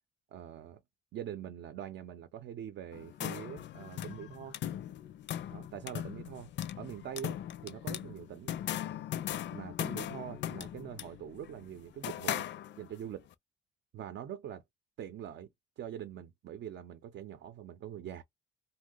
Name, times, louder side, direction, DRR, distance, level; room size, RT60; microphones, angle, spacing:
voice 1, 0.3-0.8 1.1-4.6 5.5-8.5 9.5-12.5 12.8-13.3 13.9-14.6 15.0-15.5 15.8-18.2, right 10 dB, 65° right, 0.6 m, -44 dB
sound 1, 2.9-13.1, left 11 dB, 65° left, 0.5 m, -39 dB
2.7 x 2.1 x 3.8 m
cardioid pair, 90°, 20 cm